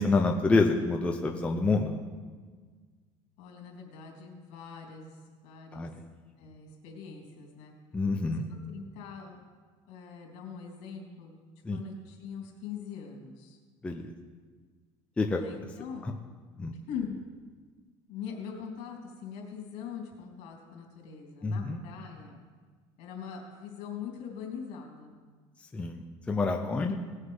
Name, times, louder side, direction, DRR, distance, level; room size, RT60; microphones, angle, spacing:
voice 1, 0.0-2.0 5.7-5.9 7.9-8.5 11.6-11.8 13.8-14.1 15.2-15.4 16.0-16.1 16.6-16.7 21.4-21.8 25.7-27.0, left 3 dB, 10° left, 3 dB, 0.6 m, -27 dB
voice 2, 3.4-5.1 5.4-5.9 6.4-7.7 8.2-9.4 9.9-11.4 11.7-13.6 15.3-16.2 16.8-17.2 18.1-22.4 23.0-25.2, left 7 dB, 70° left, 0 dB, 3.2 m, -42 dB
18.5 x 6.6 x 5.5 m, 1.5 s
cardioid pair, 160°, 12 cm